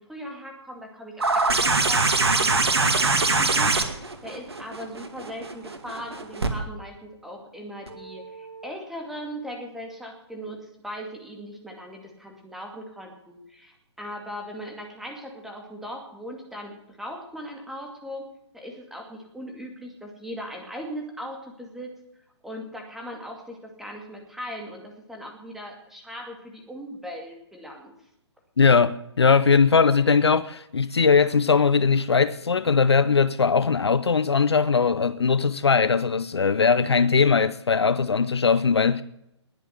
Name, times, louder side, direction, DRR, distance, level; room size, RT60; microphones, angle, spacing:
voice 1, 0.0-3.7 4.2-18.2 18.5-21.9 22.4-27.9, equal, ahead, 2.4 m, -39 dB
sound 1, 1.2-6.5 7.9-8.0, right 3 dB, 60° right, 2.3 m, -23 dB
voice 2, 28.6-39.0, left 5 dB, 65° left, 0.8 m, -20 dB
20.5 x 7.9 x 7.8 m
figure-of-eight pair, 130°, 15 cm